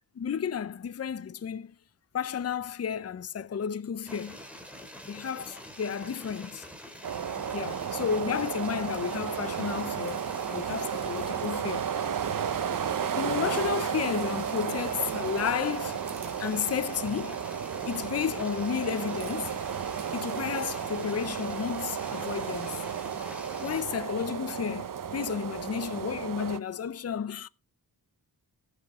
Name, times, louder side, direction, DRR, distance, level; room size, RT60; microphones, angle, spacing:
voice 1, 0.2-1.7 2.1-4.4 5.1-6.6 7.5-10.2 10.5-11.9 13.2-16.0 16.4-17.4 17.8-19.5 20.1-22.8 23.2-23.4 23.6-27.5, left 7 dB, 40° left, 0.5 m, -32 dB
sound 1, 4.0-23.8, equal, 5° right, 2.8 m, -45 dB
sound 2, 7.0-26.6, right 8 dB, 55° right, 0.6 m, -33 dB
19.0 x 6.7 x 3.6 m
wide cardioid pair, 85°, 39 cm